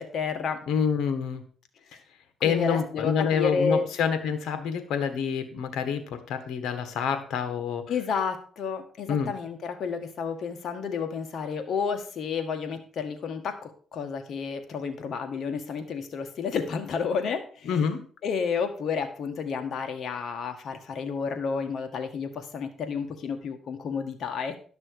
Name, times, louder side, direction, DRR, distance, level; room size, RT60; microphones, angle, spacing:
voice 1, 0.0-0.6 2.4-3.9 7.9-17.9 18.2-24.6, left 5 dB, 60° left, 6 dB, 1.7 m, -31 dB
voice 2, 0.7-1.4 2.4-6.0 6.3-7.8 9.1-9.3 17.7-18.0, left 7 dB, 80° left, 9 dB, 1.5 m, -27 dB
12.0 x 6.1 x 4.7 m, 0.43 s
cardioid pair, 90°, 0 cm